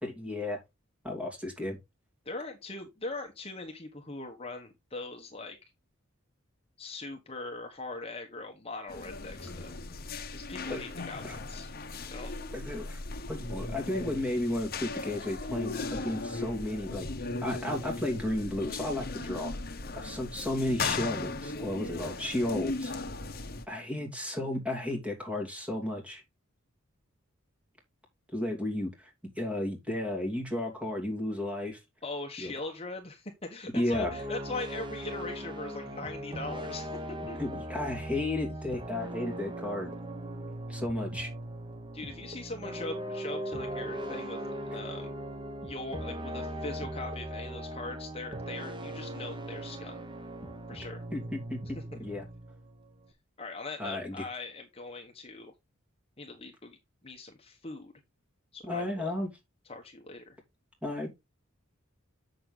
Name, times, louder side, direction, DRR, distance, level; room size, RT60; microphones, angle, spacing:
voice 1, 0.0-0.6 1.0-1.8 10.7-10.8 11.2-11.4 12.5-13.0 13.3-17.1 17.4-19.5 19.9-22.9 23.7-26.2 28.3-29.1 29.4-31.8 32.4-32.5 33.7-34.1 37.4-39.9 40.7-41.3 51.1-52.2 53.8-54.2 58.6-59.3 60.8-61.1, left 1 dB, 5° right, 2.8 m, -33 dB
voice 2, 2.2-5.6 6.8-9.8 10.3-11.7 12.1-12.3 32.0-36.9 37.3-37.4 41.9-44.4 44.7-45.1 45.6-50.0 50.7-51.0 51.7-51.8 53.4-55.5 56.2-56.8 57.0-57.9 58.5-59.1 59.7-60.4, left 2 dB, 30° left, 1.3 m, -41 dB
sound 1, 8.9-23.7, left 3 dB, 45° left, 1.1 m, -37 dB
sound 2, 33.9-53.1, right 1 dB, 25° right, 1.1 m, -39 dB
7.7 x 6.7 x 3.9 m
head